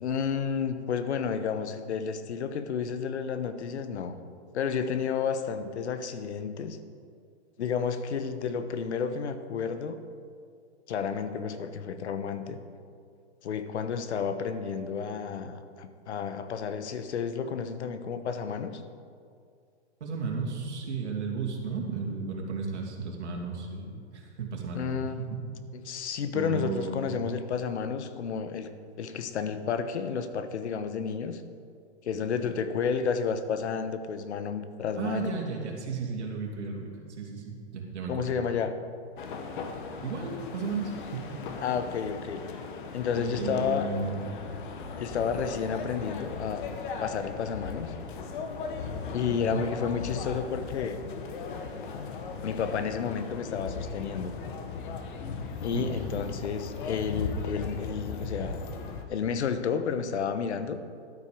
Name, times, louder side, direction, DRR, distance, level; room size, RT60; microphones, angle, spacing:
voice 1, 0.0-4.2 4.5-6.8 7.6-10.0 10.9-12.6 13.4-18.8 24.7-25.1 25.8-28.7 29.0-31.4 32.0-35.3 38.1-38.7 41.6-42.4 42.9-43.9 45.0-46.7 47.0-47.9 49.1-51.0 52.4-54.3 55.6-58.6 59.1-60.8, left 6 dB, 70° left, 10 dB, 1.1 m, -31 dB
voice 2, 20.0-25.4 26.3-27.2 35.0-36.9 37.2-38.4 40.0-41.3 43.2-44.2 49.3-49.6 55.7-56.0, right 4 dB, 75° right, 0 dB, 2.8 m, -34 dB
sound 1, 39.2-59.0, left 5 dB, 45° left, 1.2 m, -37 dB
12.5 x 9.3 x 5.2 m, 2.3 s
hypercardioid pair, 160°, 34 cm